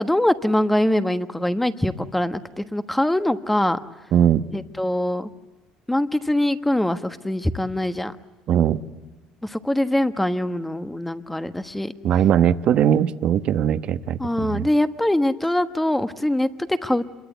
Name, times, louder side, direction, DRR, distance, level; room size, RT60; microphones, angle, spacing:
voice 1, 0.0-3.8 4.5-5.3 5.9-8.1 9.4-11.9 14.2-17.0, left 1 dB, 5° left, 10 dB, 1.3 m, -23 dB
voice 2, 4.1-4.4 8.5-8.8 12.0-14.7, right 9 dB, 55° right, 11 dB, 1.1 m, -20 dB
27.0 x 22.5 x 8.2 m, 1.1 s
cardioid pair, 115°, 2 cm